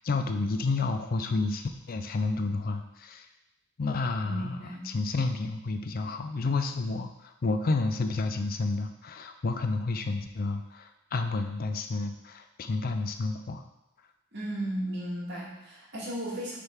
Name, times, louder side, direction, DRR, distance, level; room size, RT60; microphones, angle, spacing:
voice 1, 0.0-3.3 3.8-13.6, left 3 dB, 45° left, 7 dB, 0.4 m, -30 dB
voice 2, 4.2-4.9 14.3-16.6, right 1 dB, 55° right, -6 dB, 2.1 m, -35 dB
6.3 x 3.8 x 4.5 m, 0.92 s
head